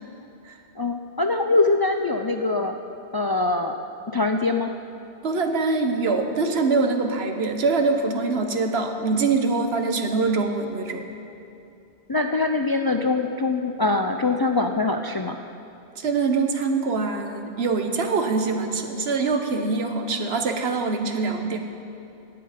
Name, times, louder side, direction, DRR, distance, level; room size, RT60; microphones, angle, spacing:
voice 1, 0.8-2.8 3.1-3.8 4.1-4.7 12.1-15.4, left 3 dB, 40° left, 5 dB, 0.3 m, -23 dB
voice 2, 5.2-11.0 16.0-21.6, right 4 dB, 80° right, 5 dB, 1.3 m, -24 dB
18.0 x 8.6 x 5.1 m, 2.7 s
omnidirectional pair, 1.0 m